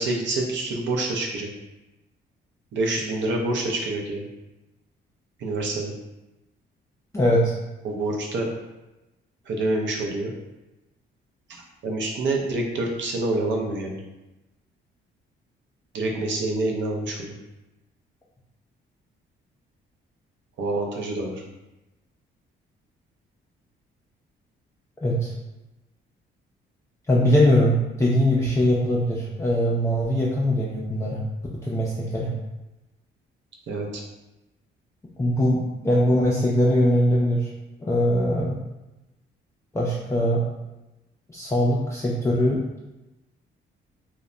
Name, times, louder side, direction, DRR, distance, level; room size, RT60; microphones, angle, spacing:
voice 1, 0.0-1.5 2.7-4.3 5.4-5.9 7.8-8.5 9.5-10.3 11.5-14.0 15.9-17.3 20.6-21.4 33.7-34.0, right 2 dB, 70° right, 0 dB, 0.6 m, -27 dB
voice 2, 7.1-7.5 25.0-25.3 27.1-31.2 31.6-32.3 35.2-37.5 37.8-38.6 39.7-40.4 41.3-42.6, equal, 15° left, -6 dB, 0.4 m, -21 dB
2.1 x 2.1 x 3.6 m, 1.0 s
cardioid pair, 90°, 20 cm